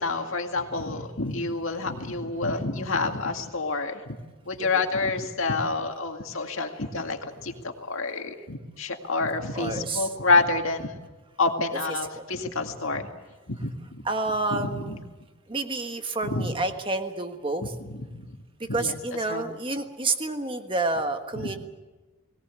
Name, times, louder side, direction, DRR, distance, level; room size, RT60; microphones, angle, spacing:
voice 1, 0.0-4.0 4.5-11.0 11.4-13.1 13.5-13.7 14.5-15.0 16.2-16.5 18.1-18.3 18.7-19.0 19.3-19.4 21.4-21.5, left 3 dB, 65° left, 4 dB, 2.1 m, -28 dB
voice 2, 9.5-10.1 12.1-12.2 14.0-14.9 15.5-17.7 18.6-21.6, right 2 dB, 25° right, 6 dB, 1.5 m, -29 dB
22.0 x 17.5 x 8.3 m, 1.2 s
head